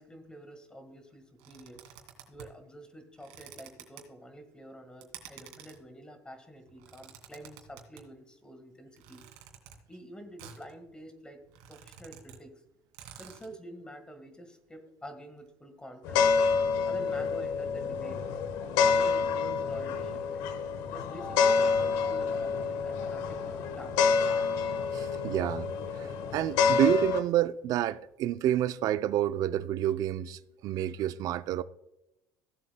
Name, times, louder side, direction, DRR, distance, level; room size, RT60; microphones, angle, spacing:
voice 1, 0.0-1.8 2.3-9.2 9.9-11.4 11.7-12.6 13.2-16.4 16.8-18.2 18.6-20.4 20.9-24.3, right 1 dB, 10° left, 1.6 m, -48 dB
sound 1, 1.4-2.6 3.2-4.0 5.0-5.8 6.7-8.0 9.0-9.8 10.4-10.7 11.1-11.2 11.4-12.4 12.7-12.8 12.9-13.5, right 9 dB, 90° right, 2.3 m, -50 dB
sound 2, 16.0-27.2, left 5 dB, 75° left, 1.2 m, -28 dB
voice 2, 24.9-25.7 26.0-31.6, right 12 dB, 60° right, 0.5 m, -29 dB
16.0 x 7.7 x 2.2 m
cardioid pair, 115°, 7 cm